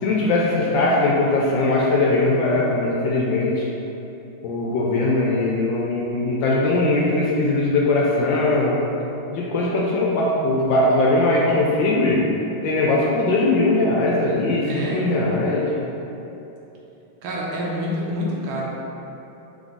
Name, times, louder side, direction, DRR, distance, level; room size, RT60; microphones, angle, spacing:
voice 1, 0.0-3.6 4.4-8.8 9.3-12.2 12.6-15.7, left 2 dB, 75° left, -4 dB, 1.1 m, -20 dB
voice 2, 14.7-15.3 17.2-18.6, equal, 75° right, -4 dB, 1.5 m, -27 dB
3.8 x 3.4 x 3.8 m, 3.0 s
omnidirectional pair, 2.3 m